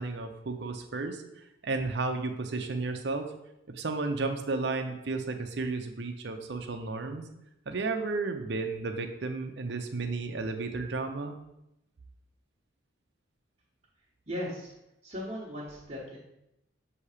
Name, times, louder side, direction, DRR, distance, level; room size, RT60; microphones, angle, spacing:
voice 1, 0.0-3.3 3.7-7.2 7.7-11.4, right 3 dB, 60° right, 5 dB, 0.6 m, -33 dB
voice 2, 14.3-14.7 15.0-16.2, equal, 30° right, -7 dB, 1.1 m, -37 dB
6.9 x 2.8 x 4.8 m, 0.85 s
head